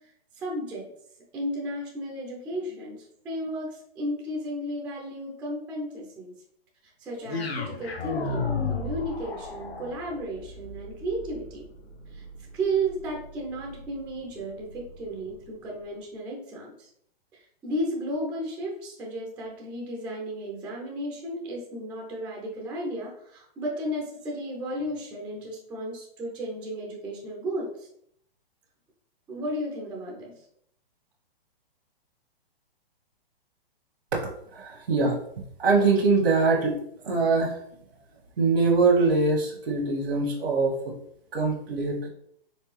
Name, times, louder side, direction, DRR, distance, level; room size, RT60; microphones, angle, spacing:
voice 1, 0.3-0.9 1.3-6.3 7.0-11.6 12.1-12.2 12.5-16.9 17.3-27.9 29.3-30.4, right 1 dB, 5° right, -2 dB, 0.3 m, -34 dB
sound 1, 7.3-15.5, left 3 dB, 80° left, 1.2 m, -35 dB
voice 2, 34.1-35.2 35.6-36.8 37.0-37.6 38.4-41.0 41.3-42.1, right 3 dB, 85° right, -1 dB, 1.2 m, -23 dB
4.5 x 3.3 x 3.1 m, 0.70 s
hypercardioid pair, 140°, 30 cm